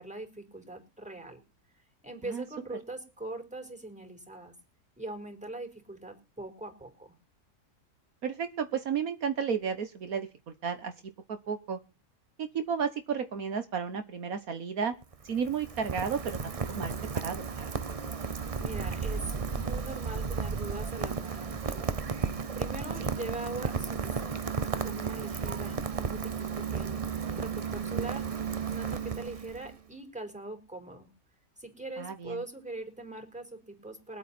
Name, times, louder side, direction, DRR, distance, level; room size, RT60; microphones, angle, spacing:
voice 1, 0.0-1.4 2.0-4.5 5.0-7.1 18.6-22.0 22.5-24.6 24.8-28.3 28.7-31.1 31.6-34.2, right 2 dB, 5° right, 4 dB, 4.5 m, -42 dB
voice 2, 8.2-10.3 10.6-10.9 11.3-11.8 12.4-15.0 15.2-16.4 16.7-17.7 23.0-23.1 32.0-32.4, right 6 dB, 70° right, 9 dB, 1.6 m, -33 dB
Rain, 14.9-29.8, right 5 dB, 30° right, 0.7 m, -34 dB
23.0 x 8.5 x 4.4 m, 0.29 s
omnidirectional pair, 1.6 m